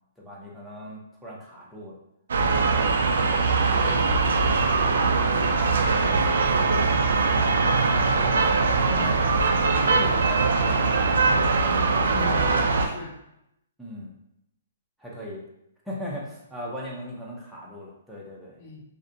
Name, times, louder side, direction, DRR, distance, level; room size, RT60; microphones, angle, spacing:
voice 1, 0.2-2.0 2.4-2.9 8.2-9.2 9.8-10.9 13.8-14.1 15.0-15.4 15.9-18.6, equal, ahead, -6 dB, 0.4 m, -38 dB
sound 1, 2.3-12.9, right 4 dB, 75° right, 0.3 m, -22 dB
voice 2, 3.7-4.2 5.0-7.3 8.9-9.2 12.0-12.5 12.8-13.1 18.6-18.8, left 3 dB, 50° left, -4 dB, 0.9 m, -40 dB
2.4 x 2.0 x 2.6 m, 0.82 s
hypercardioid pair, 155°, 0 cm